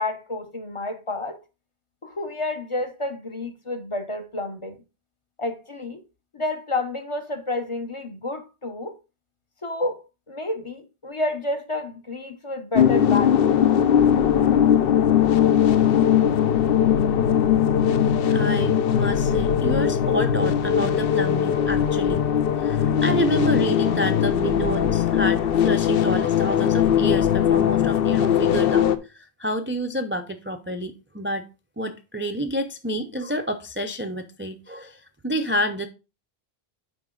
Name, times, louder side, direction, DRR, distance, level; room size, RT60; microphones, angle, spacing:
voice 1, 0.0-1.4 2.0-4.8 5.4-6.0 6.3-9.0 9.6-13.5, left 2 dB, 35° left, 0.8 m, -30 dB
sound 1, 12.7-29.0, left 9 dB, 70° left, 0.8 m, -20 dB
voice 2, 18.3-31.4 31.8-35.9, right 1 dB, 15° right, 0.4 m, -29 dB
7.9 x 5.1 x 3.7 m
omnidirectional pair, 1.0 m